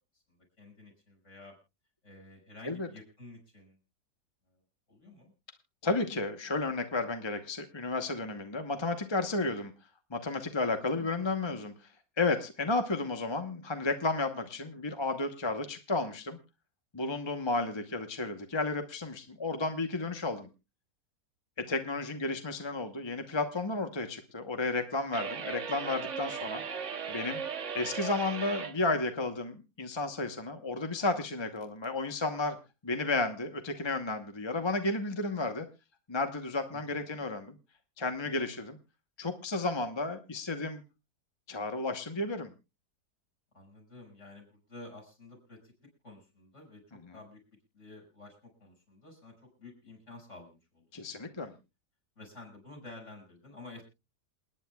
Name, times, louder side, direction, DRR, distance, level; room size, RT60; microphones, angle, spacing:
voice 1, 0.3-1.5 2.0-3.8 4.5-4.6 4.9-5.3 10.9-11.5 21.9-22.4 26.5-26.7 36.7-37.2 38.2-38.6 43.5-45.7 46.0-47.4 47.7-50.9 51.3-51.6 52.2-53.8, left 2 dB, 40° left, -1 dB, 6.4 m, -51 dB
voice 2, 5.8-9.7 10.1-11.7 12.2-16.4 16.9-20.5 21.7-26.6 27.1-27.4 27.7-32.6 32.8-35.6 36.1-37.6 38.0-38.8 39.2-40.8 41.5-42.5 50.9-51.5, left 3 dB, 20° left, 6 dB, 0.8 m, -32 dB
sound 1, 25.1-28.8, right 6 dB, 50° right, 1.3 m, -37 dB
28.0 x 9.9 x 2.3 m, 0.28 s
omnidirectional pair, 1.9 m